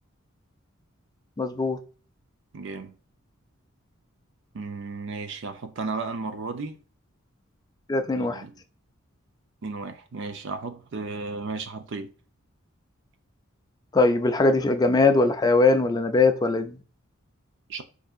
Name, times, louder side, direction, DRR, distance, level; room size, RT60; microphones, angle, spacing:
voice 1, 1.4-1.8 7.9-8.4 13.9-16.8, left 3 dB, 20° left, 0.3 m, -21 dB
voice 2, 2.5-2.9 4.5-6.8 8.2-8.5 9.6-12.1 17.7-17.8, right 4 dB, 60° right, 0.5 m, -34 dB
4.6 x 2.6 x 2.4 m
head